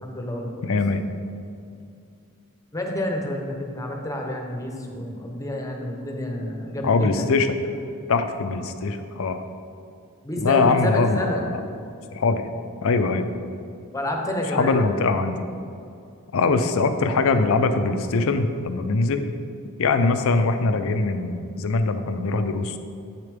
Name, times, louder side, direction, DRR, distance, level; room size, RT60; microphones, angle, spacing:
voice 1, 0.0-0.7 2.7-7.3 10.2-11.5 13.9-14.8, left 1 dB, 15° left, 1 dB, 0.8 m, -29 dB
voice 2, 0.6-1.0 6.8-7.6 8.1-9.4 10.4-11.6 12.1-12.5 12.8-13.3 14.5-15.4 16.3-19.3 19.8-22.8, left 3 dB, 70° left, 9 dB, 0.5 m, -22 dB
8.2 x 6.7 x 3.5 m, 2.5 s
head